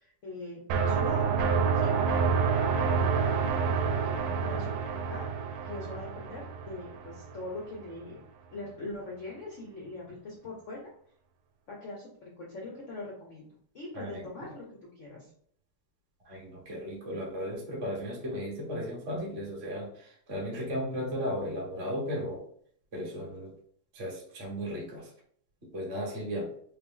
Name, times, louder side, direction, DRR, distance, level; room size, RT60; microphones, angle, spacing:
voice 1, 0.0-1.4 1.7-1.9 2.8-5.2 5.6-8.2 8.5-10.9 11.7-13.5 13.7-15.3, left 2 dB, 90° left, -2 dB, 0.6 m, -42 dB
sound 1, 0.7-7.4, right 5 dB, 85° right, 1.5 m, -28 dB
voice 2, 16.2-22.4 22.9-23.5 23.9-25.1 25.7-26.5, equal, 40° right, -3 dB, 1.0 m, -35 dB
4.2 x 2.1 x 3.6 m, 0.62 s
omnidirectional pair, 2.4 m